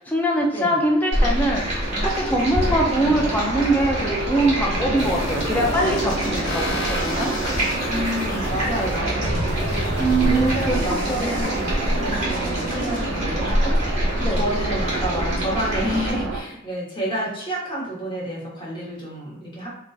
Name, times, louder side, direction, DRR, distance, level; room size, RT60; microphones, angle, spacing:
voice 1, 0.1-7.3 10.0-10.7 11.2-11.4 14.2-14.4, right 1 dB, 10° left, -2 dB, 0.3 m, -22 dB
Stream, 1.1-16.1, equal, 35° right, 1.0 m, -26 dB
sound 1, 2.6-16.4, right 3 dB, 65° right, 0.4 m, -29 dB
sound 2, 5.0-13.0, left 1 dB, 70° left, 0.6 m, -31 dB
voice 2, 7.9-9.9 10.2-13.9 14.3-19.7, equal, 25° left, -5 dB, 0.7 m, -29 dB
2.6 x 2.1 x 2.2 m, 0.81 s
head